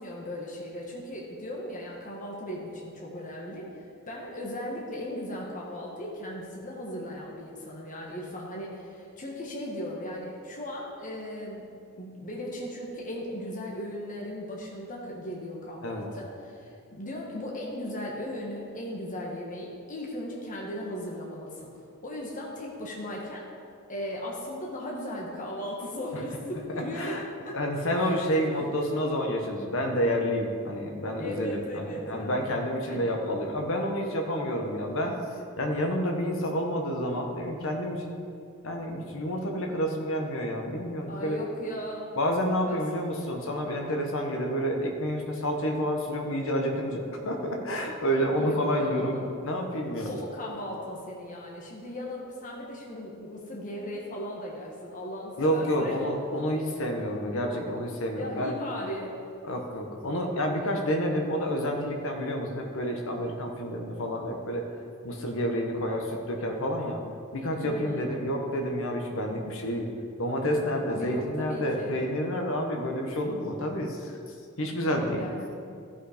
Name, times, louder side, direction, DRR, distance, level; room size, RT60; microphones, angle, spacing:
voice 1, 0.0-11.7 12.0-23.5 23.9-27.6 28.0-28.4 31.2-32.4 32.9-33.2 41.1-42.2 42.6-42.8 48.3-49.3 50.0-56.0 58.2-59.2 67.6-68.1 70.8-72.1 75.1-75.5, equal, 35° left, -3 dB, 1.3 m, -37 dB
voice 2, 27.5-35.1 35.6-38.1 38.6-41.4 42.2-49.1 49.4-50.1 55.4-58.5 59.4-64.6 65.0-67.0 67.3-69.9 70.2-74.1 74.6-75.2, equal, 60° left, 2 dB, 1.2 m, -29 dB
14.0 x 5.6 x 5.0 m, 2.4 s
head